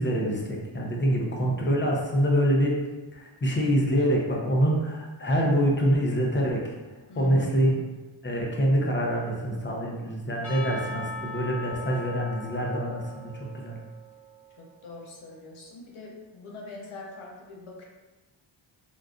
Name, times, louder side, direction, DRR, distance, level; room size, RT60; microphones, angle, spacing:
voice 1, 0.0-2.8 3.1-6.7 7.1-7.8 8.2-13.8, equal, 25° left, -1 dB, 0.6 m, -25 dB
voice 2, 1.1-1.7 7.1-7.8 14.6-17.8, left 2 dB, 80° left, -2 dB, 0.8 m, -43 dB
Percussion / Church bell, 10.4-14.6, left 1 dB, 5° left, 1.2 m, -40 dB
3.7 x 2.4 x 2.3 m, 1.2 s
cardioid pair, 85°, 49 cm